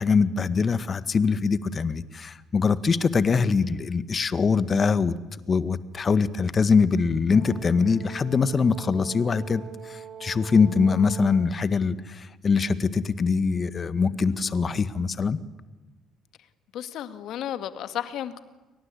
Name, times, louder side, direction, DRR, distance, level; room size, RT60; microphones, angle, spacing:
voice 1, 0.0-5.2 5.5-9.6 10.2-15.4, left 5 dB, 40° left, 1.8 m, -23 dB
Brass instrument, 7.3-11.6, right 8 dB, 55° right, 6.2 m, -43 dB
voice 2, 16.7-18.4, left 11 dB, 65° left, 2.1 m, -33 dB
30.0 x 23.5 x 8.5 m
hypercardioid pair, 55°, 0 cm